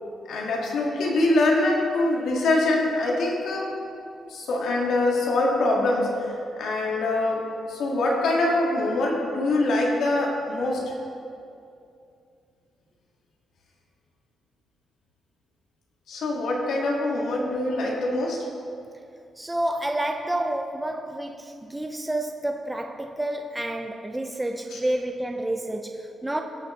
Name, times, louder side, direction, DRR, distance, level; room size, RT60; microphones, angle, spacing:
voice 1, 0.3-3.7 4.3-6.3 6.6-10.8 16.1-18.4 24.7-24.8, left 2 dB, 75° left, -2 dB, 2.1 m, -24 dB
voice 2, 19.4-26.4, right 1 dB, 10° right, 3 dB, 0.5 m, -29 dB
19.5 x 6.7 x 3.3 m, 2.5 s
cardioid pair, 145°, 0 cm